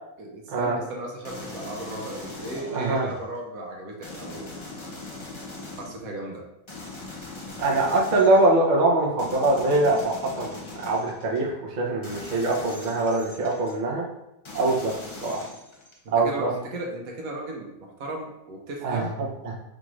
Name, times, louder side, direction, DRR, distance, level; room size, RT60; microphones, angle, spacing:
voice 1, 0.2-4.9 5.8-6.5 16.1-19.2, right 2 dB, 70° right, 0 dB, 1.2 m, -36 dB
sound 1, 1.2-3.3 4.0-6.1 6.7-8.6 9.2-11.4 12.0-13.8 14.5-16.1, left 3 dB, 50° left, 0.3 m, -41 dB
voice 2, 2.7-3.1 7.6-14.1 14.5-14.9 15.2-15.5 16.1-16.5 18.8-19.5, right 2 dB, 40° right, -2 dB, 0.7 m, -23 dB
5.1 x 2.5 x 3.1 m, 0.89 s
omnidirectional pair, 1.6 m